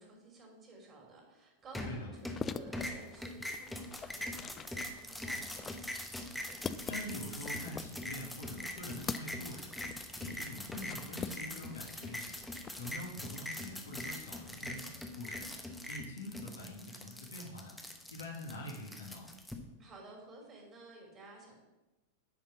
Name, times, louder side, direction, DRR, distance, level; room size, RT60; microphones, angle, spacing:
voice 1, 0.0-5.8 19.8-21.6, right 2 dB, 30° right, 0 dB, 2.8 m, -53 dB
sound 1, 1.7-2.4 2.7-19.5, left 1 dB, 5° left, 1.1 m, -42 dB
sound 2, 2.1-11.9 12.2-13.0, left 6 dB, 20° left, 0.4 m, -44 dB
voice 2, 6.9-9.7 10.2-12.4 12.8-15.5 15.9-17.8 18.1-19.3, left 1 dB, 70° left, -1 dB, 1.7 m, -45 dB
10.0 x 5.1 x 6.0 m, 1.1 s
figure-of-eight pair, 90°, 0 cm